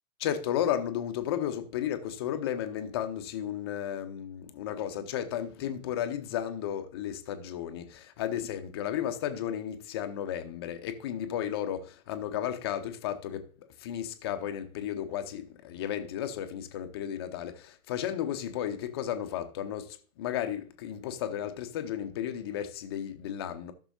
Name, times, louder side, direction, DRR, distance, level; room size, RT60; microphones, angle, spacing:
voice 1, 0.2-13.5 13.8-23.7, left 10 dB, 20° left, 0.4 m, -33 dB
13.5 x 6.2 x 2.6 m
figure-of-eight pair, 110°, 44 cm